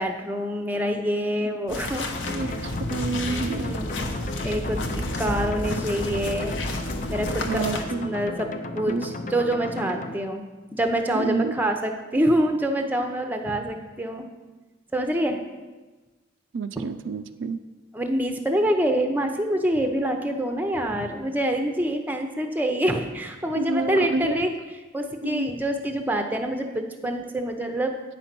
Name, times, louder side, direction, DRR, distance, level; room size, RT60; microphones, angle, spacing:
voice 1, 0.0-2.4 3.6-6.6 7.1-10.4 10.7-14.3 14.9-15.4 16.8-16.9 17.9-24.5 24.9-28.0, right 1 dB, 10° right, 5 dB, 0.6 m, -26 dB
sound 1, 1.7-7.8, left 1 dB, 85° left, 1.0 m, -31 dB
sound 2, 2.1-10.1, left 2 dB, 40° left, 0.5 m, -35 dB
voice 2, 2.2-3.7 7.5-8.1 8.9-9.1 11.1-11.5 16.5-17.6 23.5-24.4 25.2-25.5, right 3 dB, 80° right, 10 dB, 0.4 m, -29 dB
8.8 x 5.2 x 5.9 m, 1.2 s
head